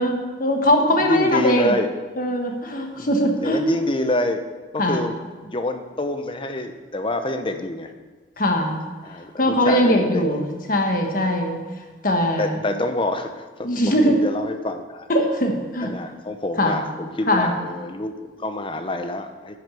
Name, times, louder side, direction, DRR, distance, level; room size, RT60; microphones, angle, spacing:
voice 1, 0.0-1.8 2.2-3.6 4.8-5.1 8.4-8.8 9.4-10.4 10.7-11.6 12.0-12.6 13.6-14.2 15.1-15.9 16.6-16.8 17.3-17.5, equal, 45° left, 3 dB, 1.4 m, -20 dB
voice 2, 1.0-1.9 2.9-4.4 4.7-5.2 5.4-7.9 9.0-10.5 12.4-15.1 15.8-19.6, left 2 dB, 25° left, 7 dB, 0.7 m, -27 dB
9.9 x 6.4 x 6.9 m, 1.4 s
head